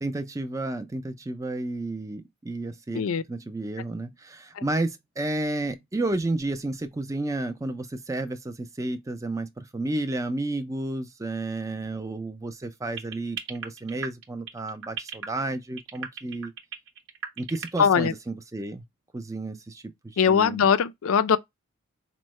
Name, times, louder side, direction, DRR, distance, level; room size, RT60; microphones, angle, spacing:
voice 1, 0.0-16.5 17.4-18.8 19.1-20.6, right 2 dB, 15° right, 0.4 m, -31 dB
sound 1, 13.0-17.9, right 6 dB, 60° right, 0.7 m, -35 dB
voice 2, 17.8-18.1 20.2-21.4, left 7 dB, 65° left, 0.4 m, -21 dB
4.4 x 2.1 x 3.0 m
head